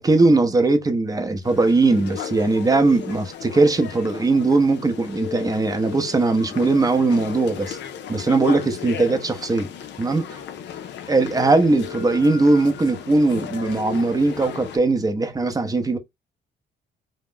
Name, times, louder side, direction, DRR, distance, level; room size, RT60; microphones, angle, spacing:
voice 1, 0.0-7.8 8.1-9.7 10.0-10.2 11.1-16.0, right 3 dB, 20° right, 0.6 m, -19 dB
sound 1, 1.4-14.8, left 8 dB, 65° left, 0.5 m, -35 dB
2.4 x 2.1 x 3.6 m
cardioid pair, 90°, 20 cm